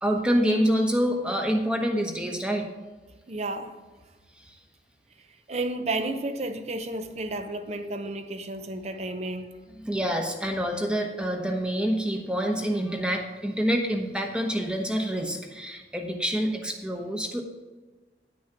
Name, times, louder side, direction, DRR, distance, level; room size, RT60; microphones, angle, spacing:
voice 1, 0.0-2.7 4.4-4.5 9.8-17.4, equal, 5° right, 1.0 m, -27 dB
voice 2, 3.3-3.7 5.5-9.6, right 2 dB, 40° right, 0.7 m, -32 dB
10.0 x 6.3 x 5.8 m
head